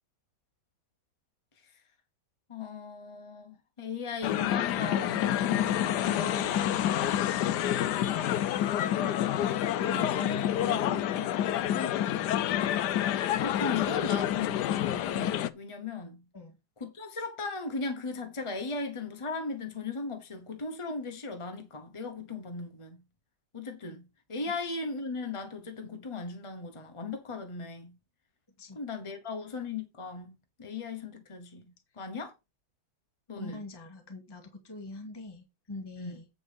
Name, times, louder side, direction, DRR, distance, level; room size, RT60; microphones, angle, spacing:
voice 1, 2.5-6.6 8.8-9.1 13.4-16.2 16.8-23.0 23.5-24.0 24.3-27.9 28.7-31.6 32.0-32.3 33.3-33.6 36.0-36.1, left 4 dB, 30° left, 0.5 m, -37 dB
sound 1, 4.2-15.5, left 11 dB, 70° left, 1.1 m, -28 dB
voice 2, 6.0-8.0 9.4-12.4 16.3-16.6 28.6-28.8 33.4-36.3, left 2 dB, 10° left, 1.8 m, -43 dB
9.3 x 4.8 x 5.1 m
omnidirectional pair, 2.2 m